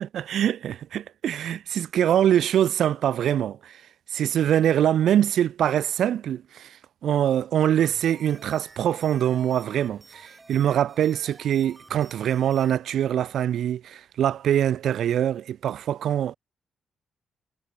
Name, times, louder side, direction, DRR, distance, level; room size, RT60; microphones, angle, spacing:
voice 1, 0.0-3.8 4.1-6.8 7.0-16.4, right 10 dB, 70° right, 0.6 m, -24 dB
sound 1, 7.8-12.8, right 2 dB, 25° right, 6.0 m, -51 dB
hypercardioid pair, 40°, 0 cm